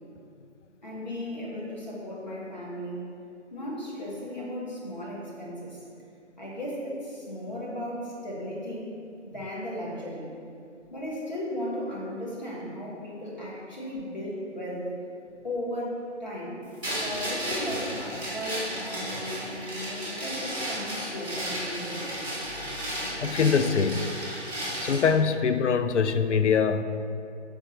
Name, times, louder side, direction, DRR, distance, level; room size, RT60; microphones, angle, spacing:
voice 1, 0.8-3.0 3.5-5.8 6.4-8.9 9.2-10.3 10.9-14.9 15.4-16.6 16.8-22.0, left 1 dB, 40° left, -5 dB, 1.3 m, -35 dB
sound 1, 16.8-25.1, equal, 10° left, 1.0 m, -34 dB
voice 2, 23.2-24.1 24.8-26.8, left 6 dB, 80° left, 10 dB, 0.5 m, -23 dB
5.0 x 3.5 x 5.6 m, 2.5 s
hypercardioid pair, 180°, 36 cm